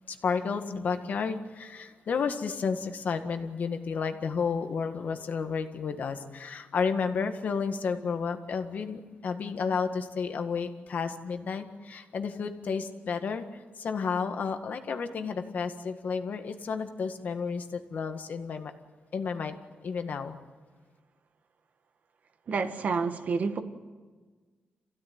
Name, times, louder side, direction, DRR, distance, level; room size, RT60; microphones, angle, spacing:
voice 1, 0.1-18.7 19.1-19.6 19.8-20.4, left 5 dB, 55° left, 7 dB, 1.8 m, -32 dB
voice 2, 22.5-23.6, right 5 dB, 50° right, 8 dB, 1.6 m, -29 dB
27.5 x 16.0 x 9.5 m, 1.4 s
wide cardioid pair, 155°, 3 cm